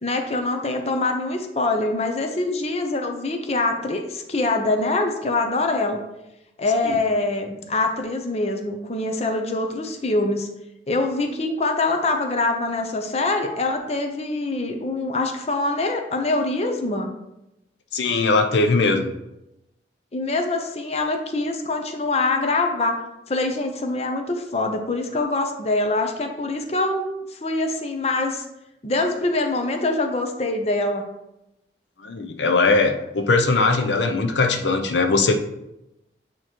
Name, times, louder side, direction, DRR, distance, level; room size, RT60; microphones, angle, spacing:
voice 1, 0.0-6.0 6.6-10.5 10.9-17.1 20.1-23.0 23.3-27.0 27.3-28.4 28.8-31.1, left 2 dB, 35° left, 4 dB, 0.6 m, -24 dB
voice 2, 17.9-19.1 32.0-35.4, left 3 dB, 80° left, 6 dB, 0.6 m, -20 dB
8.7 x 3.0 x 4.4 m, 0.90 s
head